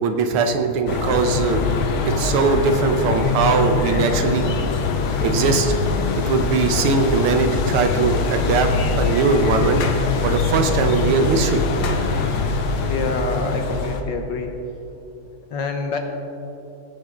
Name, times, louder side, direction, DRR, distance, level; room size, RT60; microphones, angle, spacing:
voice 1, 0.0-1.6 2.1-4.5 5.2-5.8 6.1-8.7 9.0-9.8 10.2-11.6, right 4 dB, 85° right, 6 dB, 1.8 m, -20 dB
sound 1, 0.9-14.0, left 4 dB, 85° left, 1.8 m, -23 dB
voice 2, 12.8-14.5 15.5-16.0, left 3 dB, 60° left, 4 dB, 1.6 m, -26 dB
18.0 x 9.5 x 3.8 m, 2.9 s
omnidirectional pair, 2.3 m